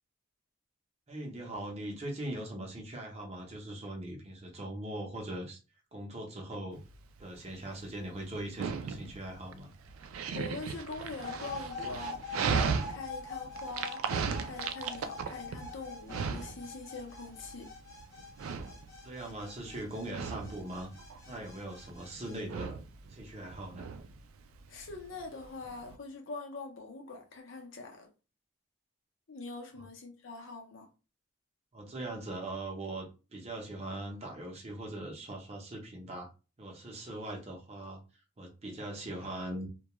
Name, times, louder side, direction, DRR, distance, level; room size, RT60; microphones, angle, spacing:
voice 1, 1.1-5.6 5.9-6.8 7.2-9.7 19.0-20.9 21.3-22.8 23.1-23.9 29.8-29.9 31.7-33.1 33.3-36.3 36.6-38.0 38.4-39.7, right 1 dB, 30° right, 0.6 m, -40 dB
Dog, 6.8-26.0, right 6 dB, 90° right, 0.3 m, -37 dB
voice 2, 10.3-12.2 12.9-14.0 14.4-17.7 24.7-28.1 29.3-30.9, left 3 dB, 70° left, 0.7 m, -43 dB
sound 1, 11.2-22.4, left 3 dB, 15° left, 0.5 m, -44 dB
2.2 x 2.2 x 2.9 m
head